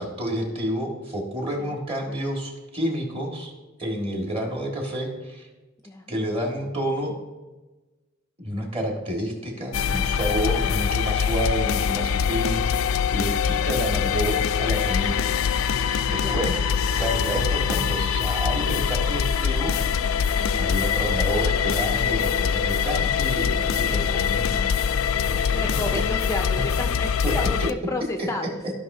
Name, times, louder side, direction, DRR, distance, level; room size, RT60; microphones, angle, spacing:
voice 1, 0.0-3.5 3.8-5.5 6.1-7.1 8.4-12.6 13.1-15.4 15.7-16.7 17.0-19.8 20.6-24.6 25.2-26.0 27.2-27.3 28.2-28.3, equal, 30° right, 0 dB, 1.7 m, -29 dB
sound 1, 9.7-27.7, left 7 dB, 80° left, 0.3 m, -23 dB
voice 2, 13.2-13.9 16.0-16.5 20.3-20.6 25.5-28.5, left 2 dB, 15° left, 4 dB, 0.4 m, -33 dB
14.5 x 5.5 x 2.7 m, 1.2 s
head